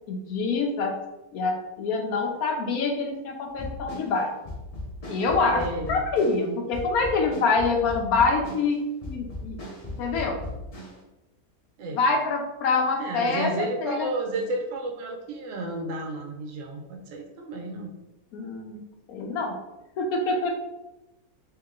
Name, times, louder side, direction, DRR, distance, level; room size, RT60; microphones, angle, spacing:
voice 1, 0.1-1.0 1.3-4.3 5.1-5.6 5.9-9.6 10.0-10.4 11.9-14.1 18.3-18.8 19.1-19.5 20.0-20.5, left 4 dB, 75° left, 2 dB, 1.2 m, -25 dB
sound 1, 3.5-11.0, left 1 dB, 35° left, 0.7 m, -37 dB
voice 2, 5.5-6.0 11.8-12.0 13.0-17.9, right 2 dB, 65° right, 1 dB, 0.9 m, -32 dB
3.3 x 2.9 x 3.7 m, 0.98 s
omnidirectional pair, 1.6 m